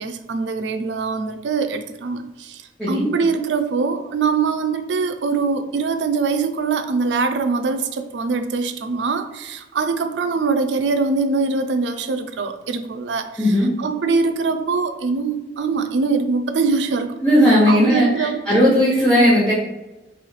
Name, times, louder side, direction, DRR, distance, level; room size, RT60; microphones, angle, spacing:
voice 1, 0.0-2.6 2.9-17.1 17.4-18.4, right 4 dB, 90° right, 8 dB, 0.4 m, -23 dB
voice 2, 13.4-13.7 17.2-19.5, equal, 5° left, -10 dB, 1.0 m, -16 dB
4.0 x 3.1 x 3.2 m, 1.0 s
head